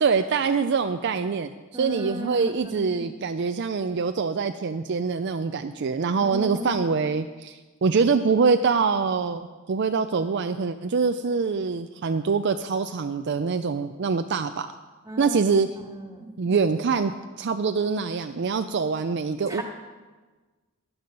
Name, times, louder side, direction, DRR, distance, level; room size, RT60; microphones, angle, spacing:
voice 1, 0.0-14.7 15.2-15.7 16.4-19.6, right 5 dB, 55° right, 8 dB, 0.4 m, -24 dB
voice 2, 1.7-3.1 6.2-6.9 15.0-15.4 15.8-16.4 19.5-19.6, equal, 15° right, 2 dB, 2.0 m, -36 dB
15.5 x 11.0 x 5.3 m, 1.3 s
head